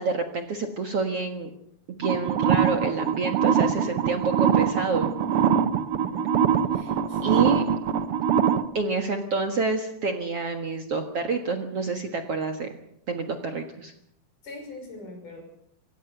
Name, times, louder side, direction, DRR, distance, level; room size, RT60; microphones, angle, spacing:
voice 1, 0.0-1.5 2.0-5.1 6.8-6.9 7.2-7.6 8.7-12.7 13.1-13.9, right 4 dB, 50° right, 5 dB, 2.1 m, -28 dB
sound 1, 2.0-8.6, right 8 dB, 75° right, 1.3 m, -23 dB
voice 2, 6.0-6.3 6.7-7.2 14.4-15.4, left 2 dB, 60° left, 4 dB, 7.4 m, -42 dB
26.0 x 17.5 x 6.8 m, 0.73 s
omnidirectional pair, 4.2 m